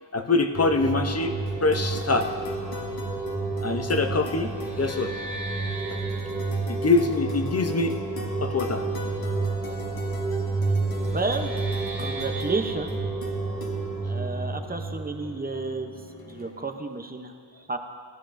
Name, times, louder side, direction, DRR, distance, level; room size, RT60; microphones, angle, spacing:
voice 1, 0.1-2.3 3.6-4.5 4.8-5.1 5.9-6.0 6.7-7.9 8.4-8.8 16.5-16.6, left 3 dB, 35° left, 6 dB, 0.6 m, -24 dB
sound 1, 0.5-16.0, right 3 dB, 5° right, 1.8 m, -30 dB
sound 2, 1.3-16.5, left 3 dB, 50° left, 1.1 m, -42 dB
voice 2, 11.1-11.5 12.0-13.0 14.0-15.9 16.3-17.3 17.7-17.8, right 3 dB, 20° right, 6 dB, 0.7 m, -31 dB
16.0 x 13.0 x 2.6 m, 2.1 s
wide cardioid pair, 115°, 47 cm